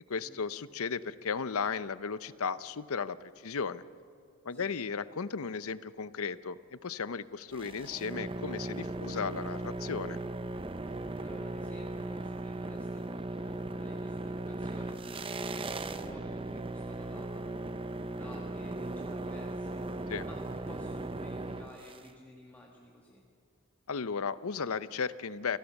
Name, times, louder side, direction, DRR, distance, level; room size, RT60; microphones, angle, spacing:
voice 1, 0.1-3.8 4.4-10.2 20.1-20.3 23.9-25.6, left 5 dB, 75° left, 15 dB, 0.7 m, -35 dB
sound 1, 7.5-22.1, right 2 dB, 25° right, 0.7 m, -38 dB
voice 2, 11.2-17.6 18.0-23.2, left 1 dB, 10° left, -2 dB, 1.5 m, -53 dB
27.5 x 17.5 x 7.1 m, 2.4 s
head